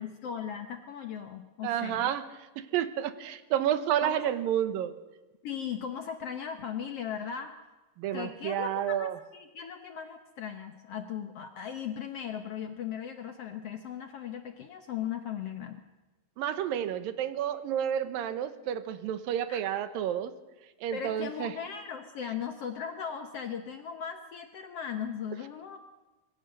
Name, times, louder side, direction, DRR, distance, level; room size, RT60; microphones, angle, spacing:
voice 1, 0.0-2.1 4.0-4.2 5.4-7.6 8.1-15.8 19.5-19.6 20.9-25.8, left 8 dB, 65° left, 7 dB, 1.6 m, -38 dB
voice 2, 1.6-2.3 2.6-5.0 8.0-9.2 16.4-20.3 20.8-21.5, right 10 dB, 85° right, 12 dB, 2.8 m, -30 dB
25.5 x 22.0 x 6.6 m, 1.1 s
omnidirectional pair, 3.9 m